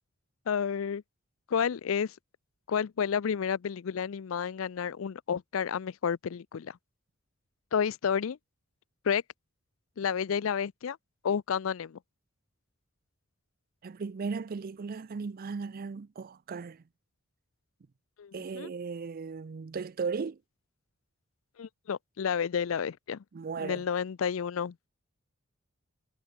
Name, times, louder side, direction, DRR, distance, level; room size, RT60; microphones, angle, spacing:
voice 1, 0.5-1.0 1.5-2.1 2.7-6.8 7.7-8.4 9.0-9.2 10.0-11.0 11.2-12.0 18.2-18.7 21.6-23.2 23.6-24.7, left 7 dB, 75° left, 0.4 m, -30 dB
voice 2, 13.8-16.8 18.3-20.4 23.3-23.8, right 5 dB, 45° right, 0.4 m, -36 dB
head